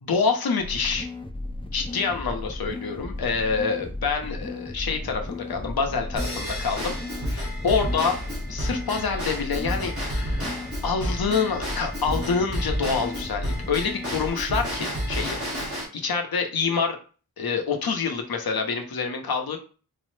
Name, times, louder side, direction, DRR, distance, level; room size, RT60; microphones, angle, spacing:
voice 1, 0.0-1.1 1.7-6.9 7.3-8.2 8.5-10.6 10.8-17.0 17.4-19.6, left 5 dB, 90° left, 4 dB, 0.8 m, -27 dB
sound 1, 0.6-14.3, left 2 dB, 15° left, 0.4 m, -35 dB
Drum kit / Drum / Bell, 6.2-15.8, equal, 40° right, 1.6 m, -31 dB
4.6 x 2.0 x 3.1 m, 0.37 s
wide cardioid pair, 80°, 35 cm